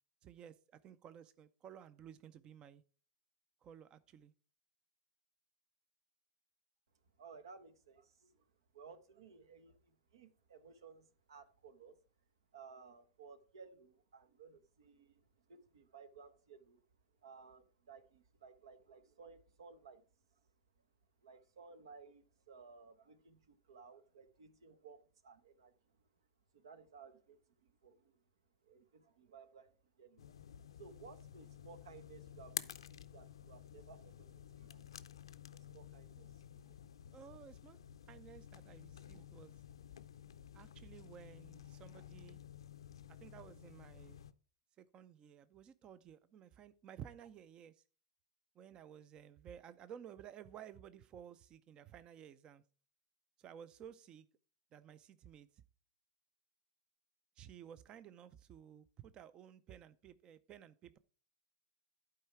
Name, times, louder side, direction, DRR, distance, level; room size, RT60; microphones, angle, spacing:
voice 1, 0.2-2.8 3.6-4.3 37.1-37.8 38.1-39.6 40.5-42.4 43.1-44.2 44.8-47.8 48.6-52.6 53.4-54.3 54.7-55.6 57.4-61.0, right 9 dB, 35° right, 0.5 m, -55 dB
voice 2, 7.2-8.5 8.7-12.0 12.5-16.8 17.2-20.0 21.2-26.0 26.5-28.2 28.6-30.3 30.8-34.9 35.4-36.4 36.7-36.8, right 5 dB, 75° right, 1.0 m, -58 dB
sound 1, 30.2-44.3, left 9 dB, 80° left, 0.5 m, -52 dB
11.5 x 4.7 x 4.6 m
hypercardioid pair, 105°, 3 cm